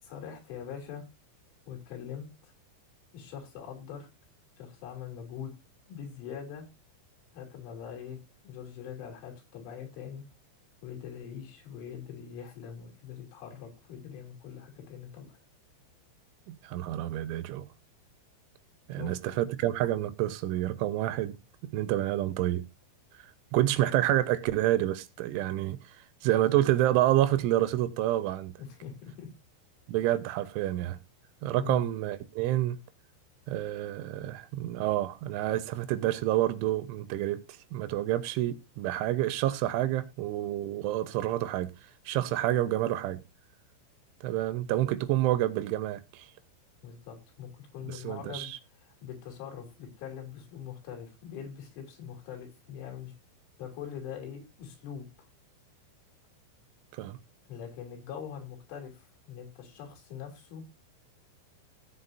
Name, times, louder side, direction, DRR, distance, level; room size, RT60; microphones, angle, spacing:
voice 1, 0.0-1.0 1.7-2.5 3.1-4.1 4.6-5.5 5.9-6.6 7.3-10.2 10.8-15.4 18.9-19.2 28.6-29.3 31.6-31.8 46.8-48.5 48.8-53.1 53.6-55.3 57.5-60.6, left 8 dB, 85° left, 5.7 m, -43 dB
voice 2, 16.5-17.7 18.9-21.4 21.7-22.6 23.5-25.8 26.2-28.5 29.9-31.0 31.4-32.8 33.5-37.4 37.7-41.7 42.1-43.2 44.2-46.3 47.9-48.6 56.9-57.2, right 14 dB, 85° right, 3.4 m, -28 dB
17.5 x 7.6 x 2.7 m
omnidirectional pair, 5.4 m